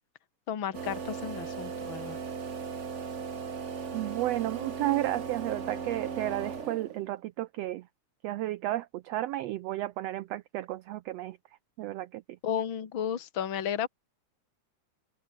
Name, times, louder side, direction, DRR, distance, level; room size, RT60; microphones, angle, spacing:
voice 1, 0.5-2.2 12.4-13.9, left 9 dB, 45° left, 2.6 m, -33 dB
sound 1, 0.7-7.1, right 6 dB, 40° right, 1.0 m, -37 dB
voice 2, 3.9-7.9 8.2-11.4 11.8-12.2, right 15 dB, 80° right, 1.4 m, -32 dB
omnidirectional pair, 3.5 m